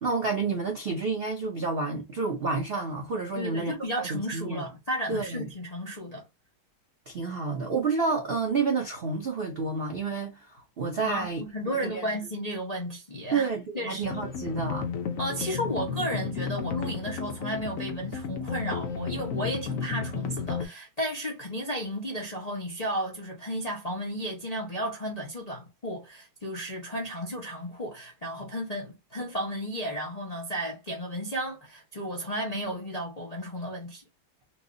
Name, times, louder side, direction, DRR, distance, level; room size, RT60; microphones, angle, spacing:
voice 1, 0.0-4.6 5.1-5.5 7.1-12.1 13.3-14.9, right 4 dB, 65° right, 0.5 m, -30 dB
voice 2, 3.4-6.2 11.1-13.5 13.7-14.1 15.2-34.0, equal, 40° left, 0.5 m, -33 dB
sound 1, 14.0-20.7, left 6 dB, 75° left, 0.7 m, -33 dB
4.5 x 2.4 x 2.7 m
omnidirectional pair, 2.2 m